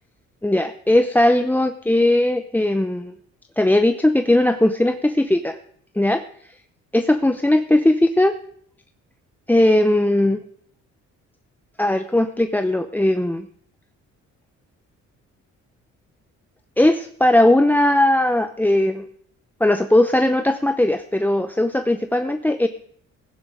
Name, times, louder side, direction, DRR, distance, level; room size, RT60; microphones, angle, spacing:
voice 1, 0.4-3.1 3.6-5.6 6.0-6.2 6.9-8.3 9.5-10.4 11.8-13.5 16.8-19.0 19.6-22.7, left 1 dB, 5° left, 9 dB, 0.7 m, -18 dB
15.0 x 10.0 x 4.8 m, 0.63 s
cardioid pair, 90°, 30 cm